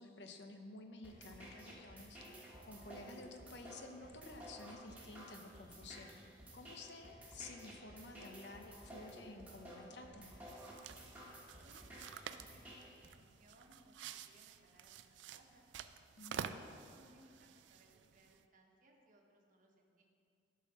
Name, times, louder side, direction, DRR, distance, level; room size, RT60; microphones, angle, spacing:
voice 1, 0.0-6.2 6.5-10.3 16.2-16.6, left 2 dB, 65° left, 5 dB, 0.8 m, -53 dB
sound 1, 1.0-13.1, right 1 dB, 10° right, 1.4 m, -54 dB
sound 2, 10.5-18.4, right 7 dB, 80° right, 0.4 m, -50 dB
voice 2, 11.6-15.6 16.2-20.0, right 1 dB, 45° right, 0 dB, 1.1 m, -67 dB
12.0 x 4.2 x 6.1 m, 2.4 s
head